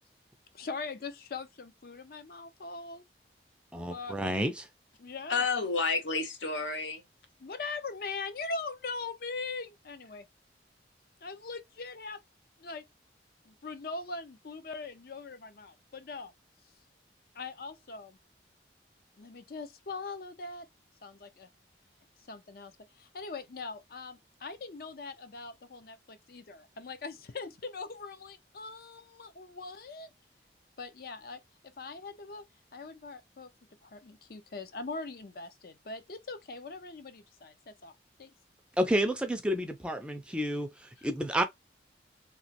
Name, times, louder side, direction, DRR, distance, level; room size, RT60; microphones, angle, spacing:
voice 1, 0.5-3.0 3.9-4.2 5.0-5.5 7.4-10.3 11.2-12.2 12.6-12.9 13.4-16.3 17.3-18.2 19.2-20.7 21.0-21.5 22.3-30.1 30.8-31.4 31.8-32.4 32.7-33.5 33.8-37.9 38.2-38.3, left 3 dB, 55° left, 0.5 m, -41 dB
voice 2, 3.7-4.7 38.8-41.4, equal, 5° right, 0.4 m, -30 dB
voice 3, 5.3-7.0, left 4 dB, 85° left, 0.8 m, -30 dB
3.1 x 2.8 x 2.8 m
head